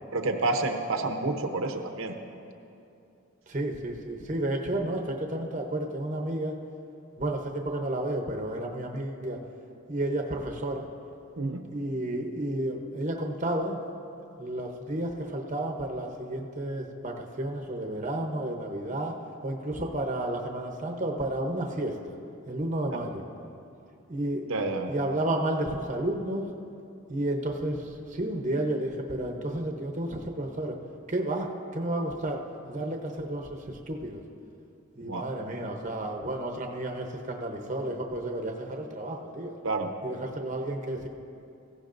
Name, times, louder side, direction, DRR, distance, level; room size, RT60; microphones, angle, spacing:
voice 1, 0.1-2.1 11.4-11.6 24.5-24.9 35.0-35.2 39.6-39.9, right 3 dB, 70° right, 3 dB, 0.8 m, -29 dB
voice 2, 3.5-6.5 7.2-9.4 9.9-10.9 11.7-13.8 14.4-19.1 19.4-22.0 22.5-23.2 24.1-24.5 24.9-26.5 27.1-30.8 31.1-32.4 32.7-34.2 35.0-39.5 40.0-41.1, right 1 dB, 35° right, 2 dB, 0.8 m, -31 dB
17.5 x 15.0 x 2.6 m, 2.6 s
head